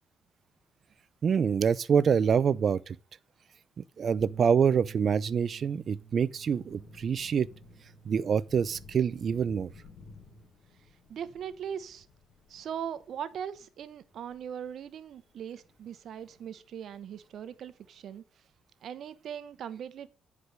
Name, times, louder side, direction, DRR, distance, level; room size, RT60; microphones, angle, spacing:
voice 1, 1.2-3.0 3.8-7.5 8.1-9.7, right 7 dB, 50° right, 0.6 m, -26 dB
sound 1, 4.2-10.5, right 8 dB, 25° right, 1.9 m, -53 dB
Thunder / Rain, 5.8-18.2, left 4 dB, 60° left, 2.4 m, -56 dB
voice 2, 11.1-12.1 12.5-18.2 18.8-20.1, right 8 dB, 65° right, 0.9 m, -40 dB
10.0 x 4.9 x 6.6 m
cardioid pair, 90°, 0 cm